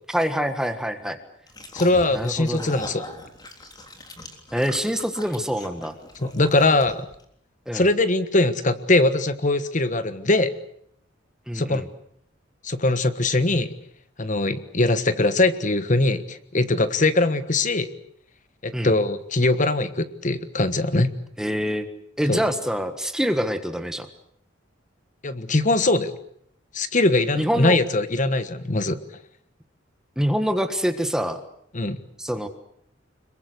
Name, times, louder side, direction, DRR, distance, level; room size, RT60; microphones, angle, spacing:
voice 1, 0.1-1.2 2.1-2.7 4.5-6.0 7.7-7.9 11.5-11.9 18.7-18.9 21.4-21.9 22.2-24.1 27.3-27.8 30.2-31.4 32.2-32.5, equal, 5° right, 8 dB, 1.5 m, -25 dB
sound 1, 1.5-7.2, left 1 dB, 20° left, 3.6 m, -40 dB
voice 2, 1.7-3.0 6.2-7.1 7.7-10.5 11.5-11.8 12.6-13.7 14.2-17.9 18.6-21.1 22.3-22.4 25.2-26.1 26.7-29.0 31.7-32.0, left 2 dB, 40° left, 12 dB, 1.4 m, -21 dB
26.0 x 22.5 x 8.1 m, 0.67 s
head